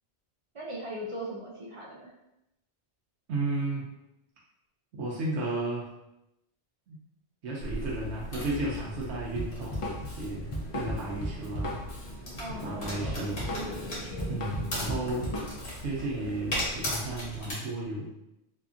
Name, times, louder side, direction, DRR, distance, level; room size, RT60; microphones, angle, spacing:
voice 1, 0.5-2.1 12.4-13.0, right 1 dB, 55° right, -4 dB, 0.3 m, -39 dB
voice 2, 3.3-3.9 5.0-5.9 6.9-7.0 7.4-12.2 12.6-13.5 14.3-15.3 15.8-18.1, right 2 dB, 90° right, -5 dB, 0.9 m, -34 dB
sound 1, 7.6-17.5, left 1 dB, 70° left, 1.2 m, -37 dB
Drum kit, 9.4-15.8, equal, 50° left, 0.4 m, -36 dB
2.8 x 2.5 x 2.3 m, 0.87 s
omnidirectional pair, 1.2 m